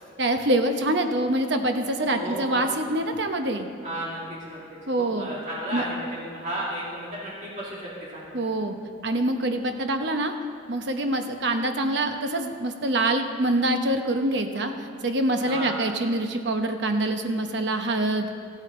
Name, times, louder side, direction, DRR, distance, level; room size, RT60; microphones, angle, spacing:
voice 1, 0.2-3.7 4.9-5.3 5.7-5.8 8.3-8.7 9.0-10.3 10.7-18.3, right 1 dB, 55° right, 6 dB, 0.9 m, -25 dB
voice 2, 2.1-2.7 3.8-4.6 5.0-8.4 15.4-15.8, right 1 dB, 35° right, -7 dB, 2.5 m, -33 dB
15.0 x 9.0 x 4.3 m, 2.3 s
head